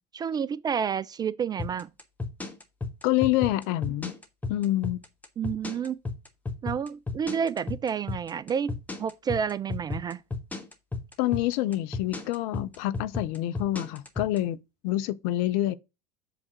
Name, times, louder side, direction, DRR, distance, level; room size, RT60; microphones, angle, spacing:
voice 1, 0.1-1.9 5.4-6.0 6.6-10.2, right 7 dB, 20° right, 0.3 m, -30 dB
sound 1, 1.6-14.4, left 3 dB, 10° left, 1.5 m, -33 dB
voice 2, 3.0-4.1 4.5-5.0 11.2-14.6 14.8-15.7, left 15 dB, 50° left, 0.6 m, -27 dB
7.9 x 3.5 x 6.3 m
figure-of-eight pair, 75°, 20 cm